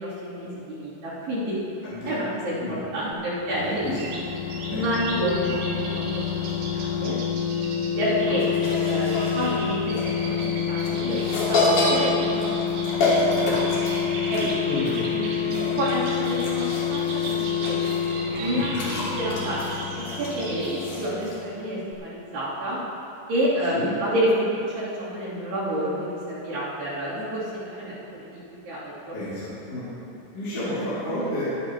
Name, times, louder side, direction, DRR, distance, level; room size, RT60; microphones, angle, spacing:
voice 1, 0.0-1.6 2.0-3.8 4.7-6.2 6.7-7.2 8.0-8.4 8.8-11.2 11.5-12.4 13.4-13.6 14.3-14.5 15.1-17.8 18.4-18.7 19.2-19.6 19.9-22.8 23.3-29.2, equal, 65° right, -12 dB, 5.1 m, -29 dB
voice 2, 1.8-2.3 2.6-2.8 3.6-4.0 4.7-4.8 14.6-14.9 18.7-18.8 23.7-23.9 29.1-29.9 30.3-31.4, left 1 dB, 40° left, -11 dB, 3.1 m, -31 dB
sound 1, 3.1-21.6 21.9-22.0, left 8 dB, 85° left, 2.6 m, -28 dB
sound 2, 3.6-20.8, right 2 dB, 85° right, 4.3 m, -37 dB
sound 3, 8.4-21.4, left 2 dB, 60° left, 4.1 m, -29 dB
21.5 x 9.5 x 3.0 m, 2.9 s
omnidirectional pair, 5.1 m